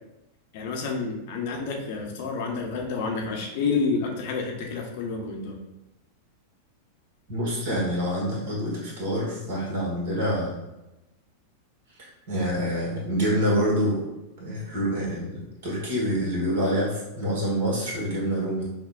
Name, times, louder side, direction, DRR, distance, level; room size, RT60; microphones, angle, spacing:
voice 1, 0.5-5.6, left 4 dB, 50° left, 1 dB, 0.7 m, -29 dB
voice 2, 7.3-10.6 12.3-14.0 14.4-18.7, equal, 50° right, -4 dB, 1.4 m, -26 dB
5.9 x 2.1 x 2.4 m, 0.95 s
figure-of-eight pair, 90°, 0 cm